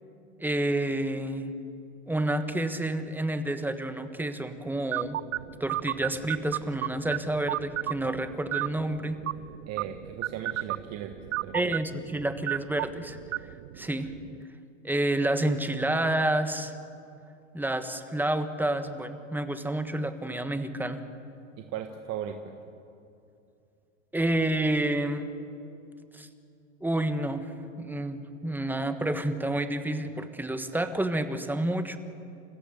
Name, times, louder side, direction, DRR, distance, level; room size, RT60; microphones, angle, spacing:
voice 1, 0.4-1.5 2.1-5.2 5.6-9.2 11.5-13.2 13.8-14.1 14.8-16.7 17.5-21.0 24.1-25.3 26.1-26.3 26.8-27.5 27.8-32.0, right 1 dB, 5° right, 9 dB, 1.5 m, -29 dB
sound 1, 4.9-14.4, right 15 dB, 85° right, 0.5 m, -35 dB
voice 2, 9.7-11.8 21.6-22.6, right 9 dB, 45° right, 5 dB, 1.5 m, -37 dB
30.0 x 15.5 x 7.0 m, 2.6 s
hypercardioid pair, 105°, 38 cm